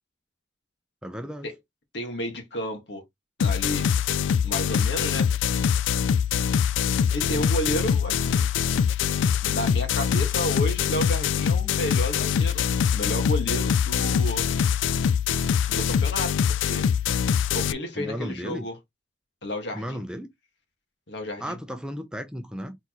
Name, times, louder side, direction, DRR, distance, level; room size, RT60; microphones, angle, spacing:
voice 1, 1.0-1.5 18.0-18.7 19.7-20.3 21.4-22.8, equal, 5° right, 0.6 m, -34 dB
voice 2, 1.9-3.0 3.4-3.9 4.4-5.3 7.1-8.5 9.4-12.7 12.9-14.5 15.6-16.9 17.5-18.8 19.4-20.0 21.1-21.6, equal, 65° left, 1.8 m, -31 dB
sound 1, 3.4-17.7, left 7 dB, 85° left, 0.3 m, -23 dB
4.3 x 4.0 x 3.0 m
head